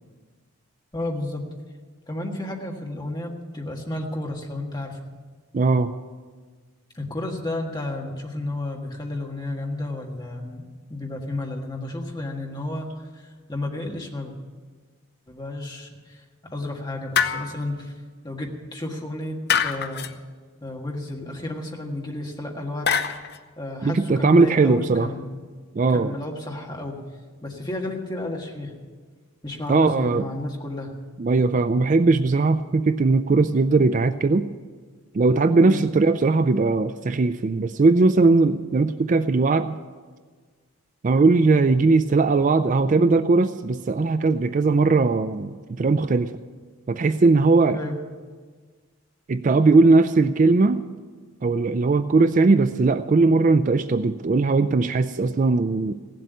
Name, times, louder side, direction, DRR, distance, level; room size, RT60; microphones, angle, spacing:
voice 1, 0.9-1.4 2.1-5.0 6.9-12.9 13.1-14.3 15.3-17.9 18.2-19.4 19.6-20.1 20.6-22.9 23.6-25.3 25.9-27.0 27.4-28.7 29.4-30.9 35.6-35.8 47.7-48.0, left 1 dB, 20° left, 0 dB, 1.7 m, -32 dB
voice 2, 5.5-5.9 23.8-25.1 25.7-26.1 29.7-30.2 31.2-34.5 35.1-39.8 41.0-46.3 46.9-47.8 49.3-50.8 51.4-55.9, right 3 dB, 35° right, 11 dB, 0.3 m, -19 dB
sound 1, 17.1-17.8 19.5-20.1 22.9-23.4, left 7 dB, 50° left, 0.7 m, -24 dB
16.5 x 7.8 x 9.3 m, 1.5 s
head